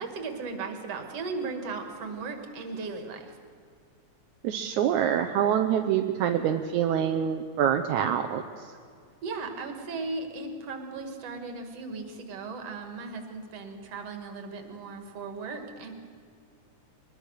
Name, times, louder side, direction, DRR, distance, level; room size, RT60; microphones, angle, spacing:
voice 1, 0.0-3.4 9.2-15.9, right 4 dB, 55° right, 5 dB, 3.0 m, -37 dB
voice 2, 4.4-8.7, right 9 dB, 80° right, 5 dB, 2.2 m, -26 dB
22.5 x 21.5 x 6.5 m, 2.1 s
omnidirectional pair, 3.4 m